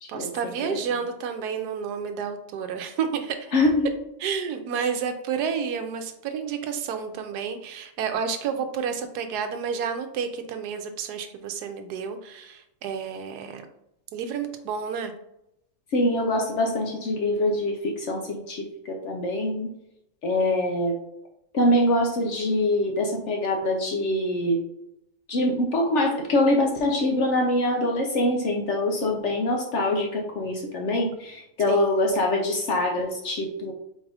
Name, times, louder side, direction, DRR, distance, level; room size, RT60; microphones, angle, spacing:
voice 1, 0.1-3.5 4.2-13.6 14.1-15.1 31.7-32.1, right 6 dB, 80° right, 7 dB, 1.2 m, -30 dB
voice 2, 3.5-3.9 4.8-4.9 15.9-19.7 20.2-20.9 21.5-24.6 25.3-33.7, left 1 dB, 60° left, 2 dB, 0.8 m, -24 dB
4.3 x 2.4 x 4.7 m, 0.81 s
omnidirectional pair, 1.7 m